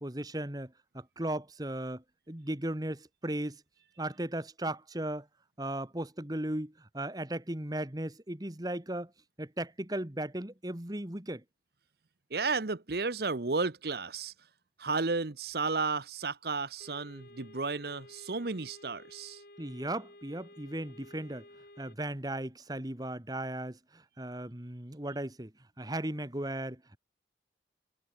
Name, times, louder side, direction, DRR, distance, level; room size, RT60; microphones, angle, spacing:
voice 1, 0.0-3.6 4.0-5.3 5.6-9.1 9.4-11.4 19.6-21.4 21.8-25.5 25.8-27.0, right 1 dB, 20° right, 1.6 m, -36 dB
voice 2, 12.3-14.3 14.8-19.4, right 4 dB, 55° right, 0.9 m, -33 dB
sound 1, 16.8-22.0, left 1 dB, 55° left, 5.5 m, -54 dB
head